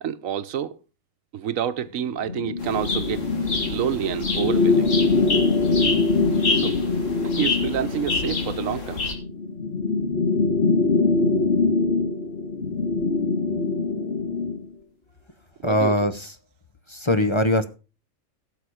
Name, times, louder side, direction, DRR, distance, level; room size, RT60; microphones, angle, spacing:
voice 1, 0.0-0.8 1.3-4.9 6.5-6.7 7.2-9.0 15.6-16.1, right 9 dB, 85° right, 1.3 m, -28 dB
sound 1, 2.2-14.6, left 3 dB, 50° left, 1.6 m, -23 dB
sound 2, 2.6-9.1, left 3 dB, 70° left, 2.5 m, -29 dB
voice 2, 15.6-16.3 16.9-17.6, left 1 dB, 25° left, 1.0 m, -21 dB
16.5 x 7.0 x 4.9 m
omnidirectional pair, 1.3 m